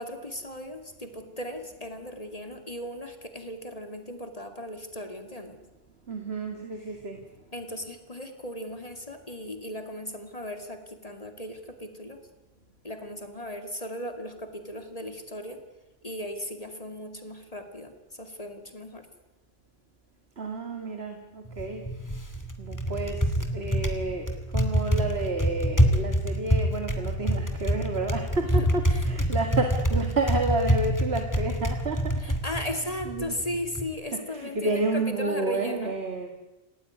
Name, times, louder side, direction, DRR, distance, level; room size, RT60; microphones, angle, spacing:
voice 1, 0.0-5.6 6.8-7.0 7.5-12.2 12.8-15.6 16.0-19.1 28.5-29.1 32.2-36.0, left 1 dB, 35° left, 6 dB, 2.5 m, -37 dB
voice 2, 6.1-7.2 20.4-21.8 22.6-32.2 33.1-33.4 34.1-36.3, right 2 dB, 80° right, 5 dB, 2.4 m, -30 dB
Typing, 21.5-33.9, equal, 15° left, 2.7 m, -27 dB
28.0 x 18.5 x 9.6 m, 1.0 s
omnidirectional pair, 1.0 m